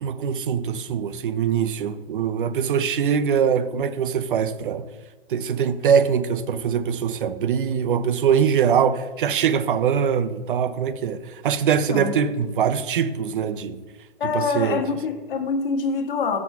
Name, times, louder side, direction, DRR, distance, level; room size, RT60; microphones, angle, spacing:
voice 1, 0.0-4.9 5.3-13.8 14.2-14.8, right 7 dB, 60° right, 0.5 m, -23 dB
voice 2, 14.2-16.4, left 4 dB, 60° left, 1.3 m, -25 dB
6.1 x 6.0 x 5.8 m
hypercardioid pair, 160°, 30 cm